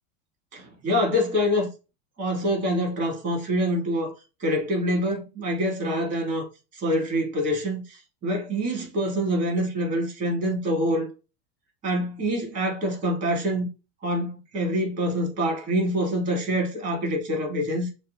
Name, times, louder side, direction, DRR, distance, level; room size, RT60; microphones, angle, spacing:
voice 1, 0.5-1.7 2.2-4.1 4.4-6.5 6.7-11.1 11.8-13.7 14.0-17.9, equal, 20° right, 2.3 m, -26 dB
6.9 x 2.4 x 2.6 m
supercardioid pair, 140°, 36 cm